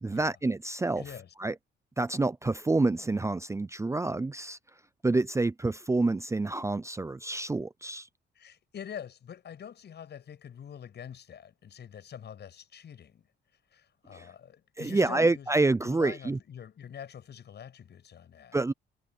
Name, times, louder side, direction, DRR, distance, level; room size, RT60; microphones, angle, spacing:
voice 1, 0.0-1.0 1.4-1.5 2.0-4.6 5.0-8.1 14.1-14.3 14.8-16.4 18.5-18.7, right 3 dB, 15° right, 0.6 m, -28 dB
voice 2, 1.0-1.3 8.3-13.3 13.7-18.6, left 8 dB, 60° left, 7.9 m, -45 dB
cardioid pair, 90°, 20 cm